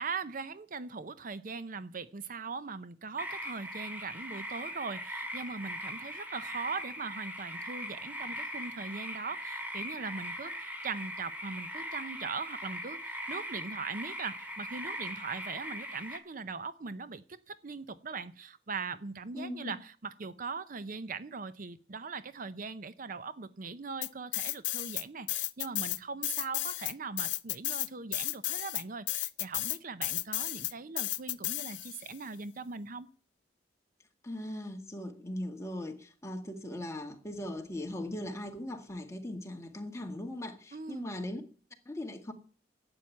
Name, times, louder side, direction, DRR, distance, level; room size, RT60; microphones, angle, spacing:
voice 1, 0.0-33.1 40.7-41.1, right 4 dB, 45° right, 0.6 m, -40 dB
sound 1, 3.2-16.2, equal, 10° right, 2.3 m, -40 dB
voice 2, 19.3-19.7 34.2-41.4 41.9-42.3, left 1 dB, 15° left, 2.0 m, -39 dB
sound 2, 24.0-25.0 25.3-32.1, left 18 dB, 70° left, 0.6 m, -33 dB
12.0 x 8.8 x 9.7 m
head